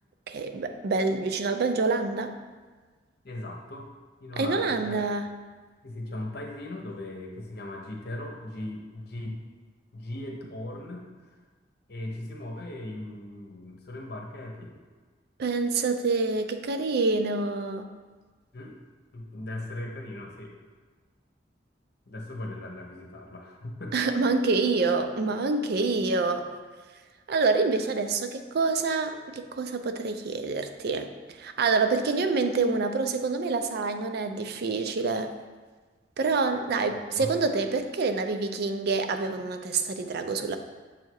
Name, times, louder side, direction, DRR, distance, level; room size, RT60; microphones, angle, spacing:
voice 1, 0.3-2.3 4.4-5.3 15.4-17.9 23.9-26.5 27.3-35.3 36.2-40.6, right 4 dB, 60° right, 7 dB, 0.4 m, -27 dB
voice 2, 3.2-3.9 4.2-5.1 5.8-9.4 9.9-11.4 11.9-14.8 18.5-18.8 19.1-20.5 22.1-24.4 37.1-37.3, left 1 dB, 60° left, 1 dB, 0.9 m, -38 dB
7.4 x 2.8 x 4.6 m, 1.4 s
head